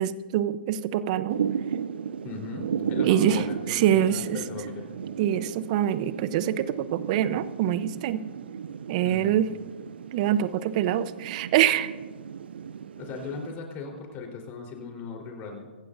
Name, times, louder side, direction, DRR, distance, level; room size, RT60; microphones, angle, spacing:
voice 1, 0.0-1.4 3.0-4.4 5.2-8.2 8.9-9.5 10.1-11.9, right 11 dB, 45° right, 14 dB, 0.8 m, -25 dB
Thunder / Rain, 1.3-13.6, right 7 dB, 70° right, 0.6 m, -35 dB
voice 2, 2.2-4.8 9.0-9.4 13.0-15.7, left 5 dB, 30° left, 1 dB, 4.0 m, -38 dB
25.0 x 15.0 x 2.7 m, 1.4 s
hypercardioid pair, 125°, 6 cm